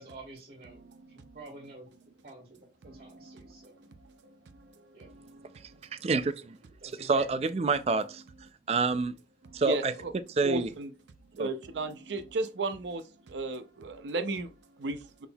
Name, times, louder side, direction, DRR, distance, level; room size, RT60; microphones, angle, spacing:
voice 1, 0.0-1.9 2.2-3.7 4.9-5.1 6.8-7.3, right 2 dB, 55° right, 1.5 m, -49 dB
voice 2, 0.9-1.4 2.8-5.6 9.6-10.1 10.4-10.9 11.4-15.3, right 2 dB, 90° right, 0.5 m, -36 dB
voice 3, 5.9-6.6 6.9-8.2 8.7-9.2 9.5-9.9 10.4-10.7 11.4-11.5, right 4 dB, 35° right, 0.3 m, -27 dB
5.9 x 3.6 x 2.2 m
head